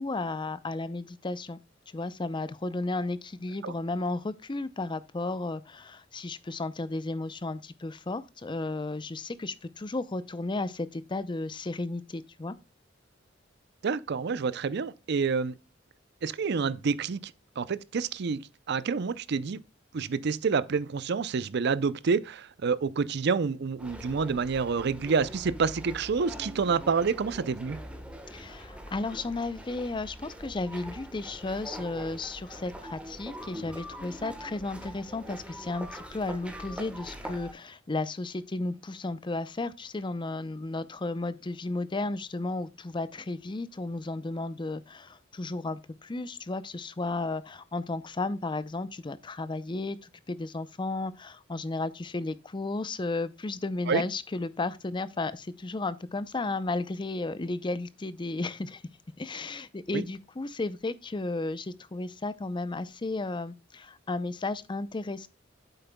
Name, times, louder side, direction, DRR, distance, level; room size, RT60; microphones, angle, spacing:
voice 1, 0.0-1.6 1.9-12.6 28.3-58.8 59.2-65.3, left 2 dB, 25° left, 0.5 m, -34 dB
voice 2, 13.8-15.6 16.2-17.3 17.6-19.6 19.9-27.8 53.9-54.0 59.9-60.0, right 5 dB, 60° right, 0.5 m, -28 dB
sound 1, 23.8-37.5, equal, 5° right, 1.2 m, -43 dB
8.9 x 7.9 x 2.2 m
head